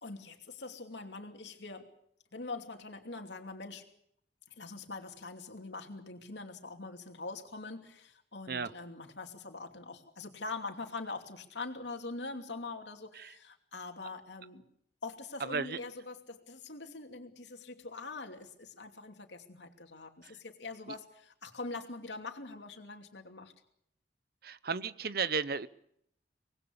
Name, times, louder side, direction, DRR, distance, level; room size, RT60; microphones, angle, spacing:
voice 1, 0.0-1.9 2.3-3.8 4.6-14.6 15.0-23.5, left 3 dB, 90° left, 4 dB, 2.8 m, -43 dB
voice 2, 15.4-15.8 24.4-25.7, right 5 dB, 60° right, 16 dB, 0.8 m, -34 dB
25.5 x 19.5 x 7.1 m, 0.71 s
head